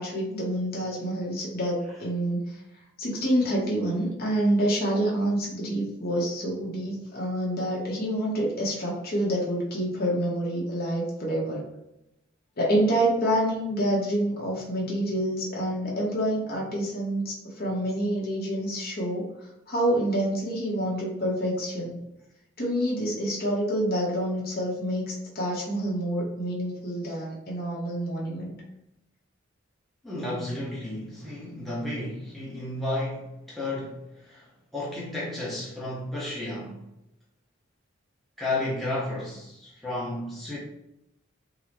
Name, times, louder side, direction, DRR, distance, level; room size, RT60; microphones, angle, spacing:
voice 1, 0.0-2.4 3.0-11.6 12.6-19.2 19.7-22.0 22.6-28.5, right 1 dB, 50° left, -3 dB, 0.9 m, -27 dB
voice 2, 30.0-34.0 34.3-34.4 34.7-36.8 38.4-40.6, left 1 dB, ahead, -7 dB, 0.7 m, -32 dB
3.8 x 2.0 x 2.9 m, 0.86 s
head